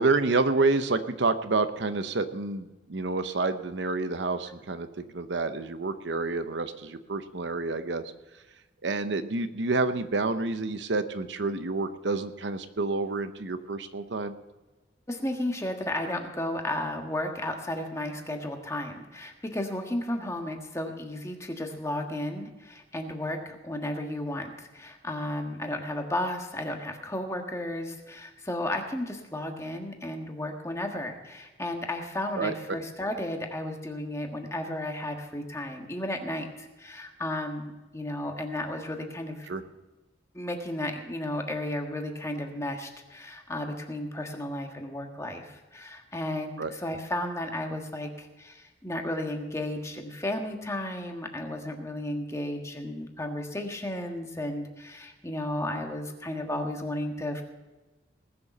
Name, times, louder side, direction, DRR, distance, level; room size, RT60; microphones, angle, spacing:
voice 1, 0.0-8.0 8.8-14.3 32.4-32.8 39.5-39.6 46.6-46.7, right 3 dB, 75° right, 10 dB, 0.8 m, -28 dB
voice 2, 15.1-39.5 40.3-57.4, left 1 dB, 15° left, 3 dB, 1.5 m, -33 dB
19.5 x 6.9 x 6.7 m, 1.2 s
head